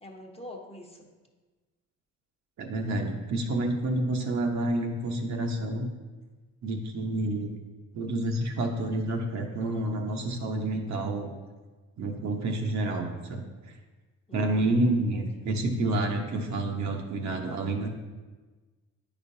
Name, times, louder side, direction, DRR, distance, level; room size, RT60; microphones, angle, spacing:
voice 1, 0.0-1.1 14.3-15.2, left 1 dB, 20° left, 1 dB, 1.0 m, -45 dB
voice 2, 2.6-5.9 6.6-7.5 7.9-11.3 12.0-13.7 14.3-17.9, right 2 dB, 65° right, 2 dB, 1.0 m, -29 dB
9.5 x 5.2 x 2.7 m, 1.3 s
cardioid pair, 90°, 30 cm